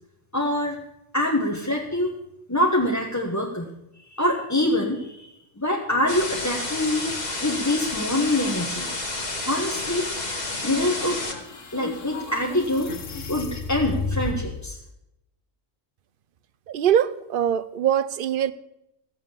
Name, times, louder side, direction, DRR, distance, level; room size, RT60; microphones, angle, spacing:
voice 1, 0.3-0.8 1.1-2.1 2.5-3.7 4.1-7.1 7.4-8.9 9.4-10.1 10.6-12.9 13.3-14.8, left 1 dB, 15° left, -2 dB, 1.3 m, -25 dB
sound 1, 6.1-11.3, left 2 dB, 35° left, 2.0 m, -30 dB
sound 2, 10.6-14.7, left 4 dB, 75° left, 1.7 m, -33 dB
voice 2, 16.7-18.5, right 9 dB, 55° right, 16 dB, 0.7 m, -22 dB
15.5 x 7.8 x 7.0 m, 0.84 s
omnidirectional pair, 1.3 m